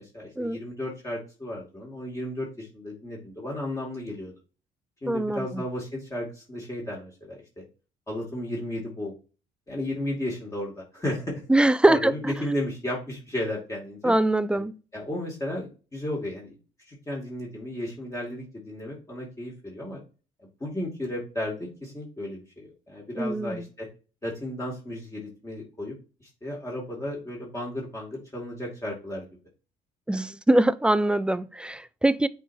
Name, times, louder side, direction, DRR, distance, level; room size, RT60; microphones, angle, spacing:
voice 1, 0.0-4.3 5.0-7.6 8.1-9.1 9.7-11.5 11.9-14.1 14.5-14.6 14.9-16.6 16.9-20.0 20.6-23.9 24.2-25.9 26.2-29.3, left 1 dB, 20° left, 2.3 m, -34 dB
voice 2, 5.1-5.6 11.5-12.3 14.0-14.7 23.2-23.6 30.1-32.3, right 1 dB, 5° right, 0.4 m, -23 dB
8.1 x 4.4 x 2.7 m
cardioid pair, 110°, 17 cm